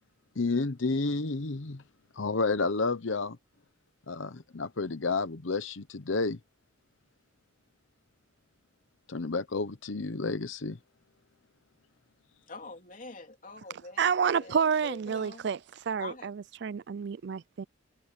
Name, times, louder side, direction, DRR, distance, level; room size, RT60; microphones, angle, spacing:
voice 1, 0.4-1.8 2.2-3.4 4.1-6.4 9.1-10.8, left 3 dB, 80° left, 0.9 m, -30 dB
voice 2, 12.5-15.5 16.0-16.3, left 3 dB, 45° left, 3.0 m, -45 dB
voice 3, 14.0-15.6 15.9-17.6, right 6 dB, 60° right, 0.4 m, -29 dB
head